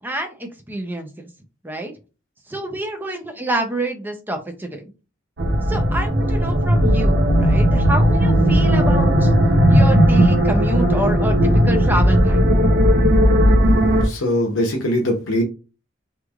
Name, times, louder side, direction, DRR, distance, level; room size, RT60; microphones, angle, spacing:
voice 1, 0.0-1.3 1.6-1.9 2.5-4.9 5.7-9.3 9.7-12.5, right 1 dB, 10° right, 4 dB, 0.5 m, -27 dB
sound 1, 5.4-14.1, equal, 55° right, 0.6 m, -16 dB
voice 2, 14.0-15.4, left 1 dB, 75° left, 0 dB, 0.7 m, -21 dB
3.0 x 2.4 x 2.3 m, 0.32 s
head